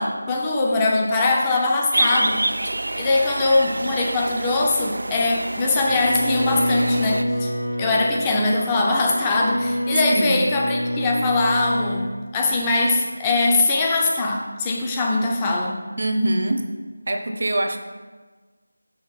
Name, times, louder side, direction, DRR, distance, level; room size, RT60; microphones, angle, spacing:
voice 1, 0.0-7.5 7.8-15.8, left 2 dB, 10° left, -1 dB, 0.5 m, -22 dB
sound 1, 1.9-7.2, right 1 dB, 70° right, 0.4 m, -27 dB
Bowed string instrument, 5.9-12.2, equal, 75° left, 1.3 m, -26 dB
voice 2, 10.1-10.5 16.0-16.7 17.1-17.8, right 1 dB, 50° right, 5 dB, 0.8 m, -23 dB
6.5 x 5.3 x 5.7 m, 1.4 s
figure-of-eight pair, 175°, 0 cm